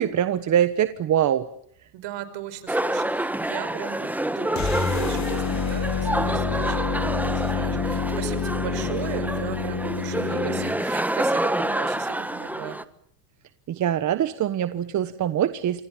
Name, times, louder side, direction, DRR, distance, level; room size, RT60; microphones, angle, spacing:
voice 1, 0.0-1.4 13.7-15.8, right 10 dB, 35° right, 11 dB, 1.3 m, -23 dB
voice 2, 1.9-12.8, right 11 dB, 60° right, 13 dB, 4.9 m, -37 dB
sound 1, 2.7-12.8, right 1 dB, 5° right, 1.2 m, -28 dB
sound 2, 4.5-10.8, left 6 dB, 35° left, 5.0 m, -28 dB
28.0 x 25.0 x 7.4 m, 0.66 s
supercardioid pair, 115°, 48 cm